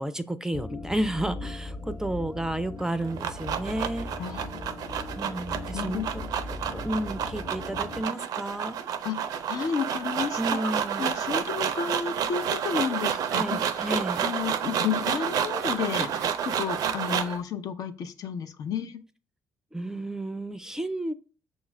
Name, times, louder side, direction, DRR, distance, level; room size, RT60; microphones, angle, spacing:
voice 1, 0.0-4.1 5.1-6.0 6.7-8.8 10.4-11.0 13.3-14.3 19.7-21.1, right 1 dB, 10° right, 13 dB, 0.4 m, -31 dB
sound 1, 0.5-8.1, left 2 dB, 35° left, 1.0 m, -39 dB
sound 2, 2.8-17.4, right 8 dB, 70° right, 0.5 m, -30 dB
voice 2, 4.2-4.6 5.2-5.3 5.7-6.1 9.0-10.7 11.0-13.4 13.8-13.9 14.2-19.0, left 7 dB, 65° left, 7 dB, 0.6 m, -32 dB
6.2 x 2.4 x 3.1 m, 0.37 s
supercardioid pair, 70°, 7 cm